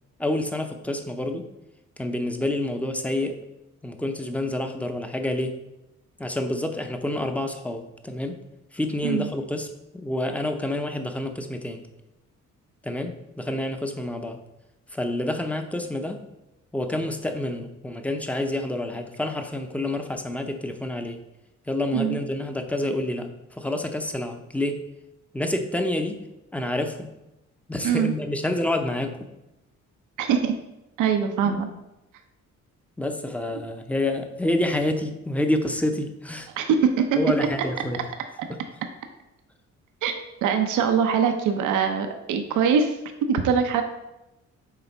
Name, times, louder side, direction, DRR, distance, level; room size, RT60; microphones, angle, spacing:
voice 1, 0.2-1.5 2.0-3.4 3.8-5.6 6.2-8.4 8.7-11.9 12.8-14.4 14.9-16.2 16.7-21.2 21.7-24.8 25.3-26.2 26.5-27.1 27.7-29.3 31.4-31.6 33.0-36.5 37.2-38.0 38.5-38.6, left 1 dB, 5° left, 6 dB, 0.7 m, -28 dB
voice 2, 30.2-30.5 31.0-31.7 36.5-37.2 40.0-40.1 40.4-43.0 43.3-43.8, right 7 dB, 85° right, 6 dB, 0.7 m, -22 dB
6.9 x 3.4 x 4.5 m, 0.92 s
cardioid pair, 90°, 30 cm